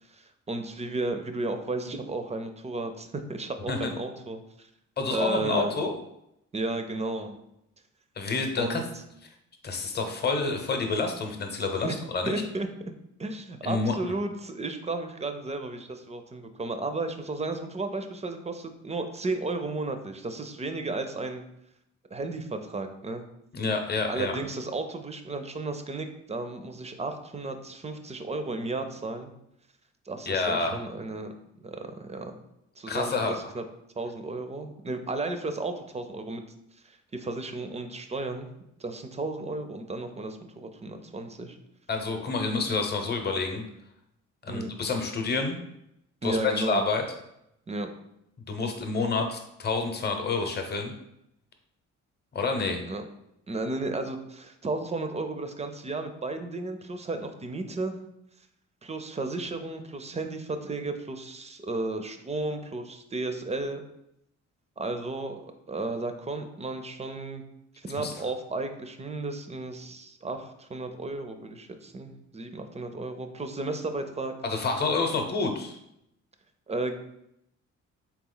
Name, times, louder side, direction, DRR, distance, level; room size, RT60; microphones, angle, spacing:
voice 1, 0.1-4.7 5.1-5.7 6.5-7.4 8.6-8.9 11.8-12.0 12.3-12.7 13.2-21.4 22.1-23.2 24.1-29.3 30.1-31.3 31.6-32.4 32.8-33.2 33.5-33.6 34.0-36.4 36.8-38.5 38.8-41.6 44.5-44.7 46.2-46.9 47.7-47.9 52.9-53.0 53.5-58.0 58.8-63.8 64.8-65.4 65.7-67.4 67.8-74.3 76.7-77.0, right 2 dB, 20° right, 7 dB, 0.5 m, -33 dB
voice 2, 5.0-5.9 8.2-8.8 9.6-12.4 13.6-14.0 23.5-24.4 30.3-30.8 32.9-33.4 41.9-43.6 44.4-45.6 46.2-47.0 48.5-50.9 52.3-52.8 68.0-68.1 74.4-75.8, left 4 dB, 35° left, 4 dB, 0.8 m, -28 dB
3.7 x 3.0 x 3.8 m, 0.80 s
cardioid pair, 90°, 30 cm